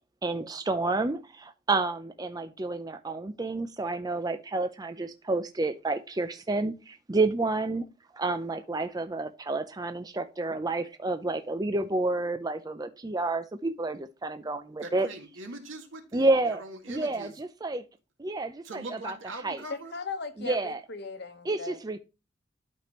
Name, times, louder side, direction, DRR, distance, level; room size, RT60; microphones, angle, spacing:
voice 1, 0.2-7.9 8.1-15.1 16.1-16.6 16.9-17.8 18.2-19.2 19.4-19.6 20.4-20.8 21.5-22.0, right 2 dB, 20° right, 0.5 m, -30 dB
voice 2, 14.8-17.3 18.6-19.9, right 2 dB, 80° right, 2.1 m, -42 dB
voice 3, 19.9-21.8, left 4 dB, 60° left, 1.3 m, -38 dB
12.0 x 5.1 x 3.1 m
head